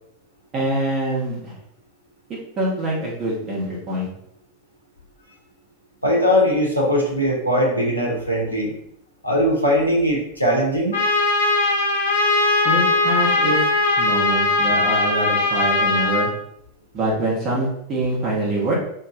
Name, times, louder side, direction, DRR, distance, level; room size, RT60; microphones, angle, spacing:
voice 1, 0.5-1.5 2.3-4.1 12.6-16.3 16.9-18.7, right 1 dB, 30° right, -5 dB, 1.2 m, -25 dB
voice 2, 6.0-8.7 9.2-11.0, equal, 90° right, -3 dB, 0.9 m, -20 dB
Trumpet, 10.9-16.3, left 3 dB, 70° left, 1.1 m, -19 dB
2.7 x 2.6 x 3.5 m, 0.72 s
figure-of-eight pair, 90°, 0 cm